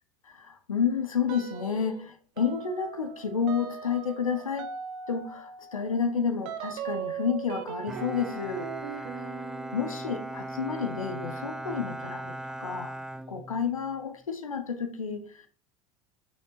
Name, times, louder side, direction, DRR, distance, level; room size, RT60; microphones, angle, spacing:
voice 1, 0.2-4.7 5.1-8.7 9.2-9.3 9.7-13.0 13.3-15.5, left 6 dB, 80° left, 0.9 m, -30 dB
sound 1, 1.3-2.0 2.4-12.7, right 8 dB, 55° right, 1.0 m, -41 dB
Bowed string instrument, 7.9-14.0, right 1 dB, 5° right, 0.5 m, -39 dB
8.8 x 6.6 x 3.1 m
figure-of-eight pair, 75°, 17 cm